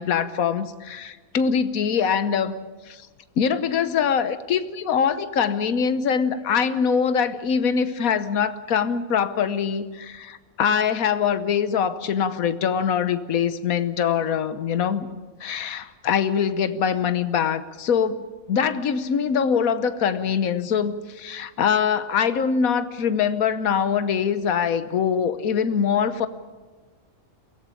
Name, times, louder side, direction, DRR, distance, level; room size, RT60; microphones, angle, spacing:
voice 1, 0.0-2.5 2.9-3.0 3.4-15.1 15.4-18.2 18.5-26.3, left 7 dB, 85° left, 12 dB, 1.4 m, -23 dB
23.5 x 17.0 x 8.5 m, 1.3 s
omnidirectional pair, 1.4 m